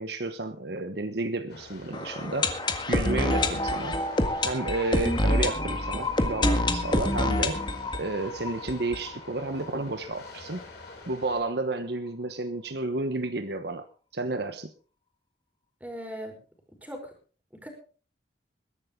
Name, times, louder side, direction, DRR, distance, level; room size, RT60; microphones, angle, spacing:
voice 1, 0.0-2.6 2.9-4.0 4.4-7.7 8.0-10.6 11.1-13.9 14.1-14.7, right 2 dB, 60° right, 9 dB, 1.2 m, -31 dB
sound 1, 1.5-11.4, left 2 dB, 60° left, 7.6 m, -47 dB
sound 2, 1.9-9.7 10.0-10.1 10.2-10.3 10.9-11.0, left 1 dB, 25° left, 1.7 m, -27 dB
voice 2, 15.8-16.4 16.8-17.1 17.5-17.7, equal, 10° right, 3 dB, 4.6 m, -39 dB
21.0 x 11.5 x 3.8 m, 0.38 s
head